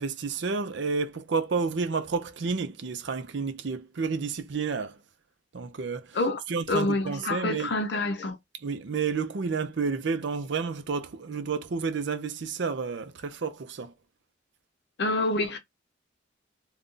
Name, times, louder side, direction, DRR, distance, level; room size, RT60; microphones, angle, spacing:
voice 1, 0.0-5.0 5.5-6.2 6.5-7.7 8.6-13.9, right 5 dB, 60° right, 0.5 m, -30 dB
voice 2, 6.7-8.4 15.0-15.6, left 2 dB, 55° left, 0.6 m, -27 dB
2.6 x 2.2 x 3.7 m
head